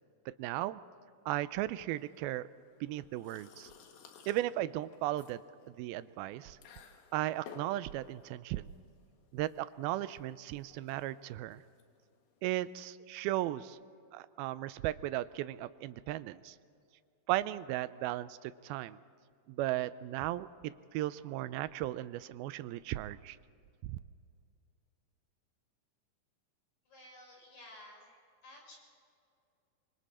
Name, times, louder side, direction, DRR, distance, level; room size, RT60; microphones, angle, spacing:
voice 1, 0.4-0.8 1.3-2.5 2.8-3.7 4.3-5.4 5.8-6.6 7.1-8.7 9.3-11.6 12.4-13.8 14.1-16.6 17.3-19.0 19.5-23.4 23.8-24.0, right 15 dB, 90° right, 15 dB, 2.5 m, -36 dB
sound 1, 2.0-12.9, left 6 dB, 75° left, 3.4 m, -57 dB
voice 2, 26.9-28.2 28.4-28.8, left 1 dB, 50° left, -2 dB, 7.4 m, -53 dB
25.5 x 25.0 x 4.3 m, 2.4 s
omnidirectional pair, 4.2 m